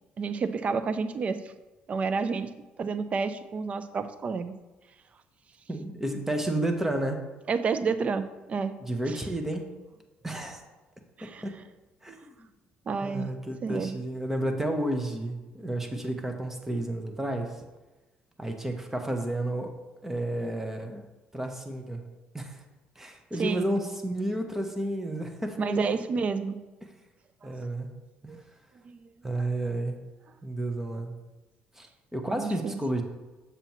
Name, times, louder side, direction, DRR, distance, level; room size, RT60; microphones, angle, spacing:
voice 1, 0.2-1.5 1.9-2.5 2.8-4.5 7.5-8.7 9.1-9.2 11.2-11.4 12.9-13.3 13.6-14.0 23.4-23.7 25.6-26.6 27.4-27.5 28.3-28.4 28.9-29.0 32.3-32.8, right 5 dB, 40° right, 11 dB, 0.5 m, -30 dB
voice 2, 5.7-7.2 8.8-9.7 10.2-10.6 11.2-11.5 12.0-12.3 13.0-17.6 18.4-19.7 20.0-21.0 21.3-22.0 22.3-22.6 23.0-26.0 27.4-27.9 28.2-28.4 29.2-30.0 30.4-31.1 31.8-31.9 32.1-33.0, right 1 dB, 10° right, 4 dB, 1.0 m, -31 dB
7.0 x 6.9 x 3.0 m, 1.1 s
cardioid pair, 100°, 3 cm